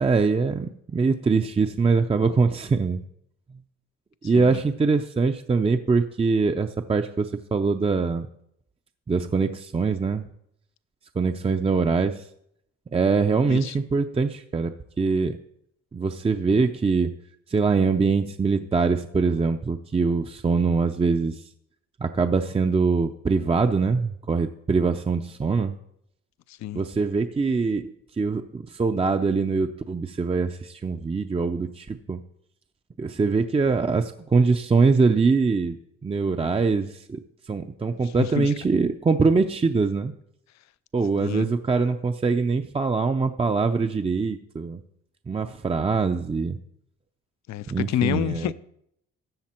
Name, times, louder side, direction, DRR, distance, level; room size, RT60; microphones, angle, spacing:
voice 1, 0.0-3.0 4.2-8.3 9.1-10.3 11.2-12.2 12.9-15.4 15.9-17.1 17.5-21.4 22.0-25.7 26.7-27.8 28.2-32.2 33.0-37.2 37.5-40.1 40.9-44.8 45.3-46.6 47.7-48.5, right 4 dB, 20° right, 7 dB, 0.5 m, -23 dB
voice 2, 4.2-4.6 13.4-13.8 26.5-26.8 38.0-38.5 41.1-41.4 47.5-48.5, left 12 dB, 65° left, 17 dB, 0.6 m, -29 dB
13.5 x 7.6 x 4.4 m, 0.73 s
cardioid pair, 90°, 30 cm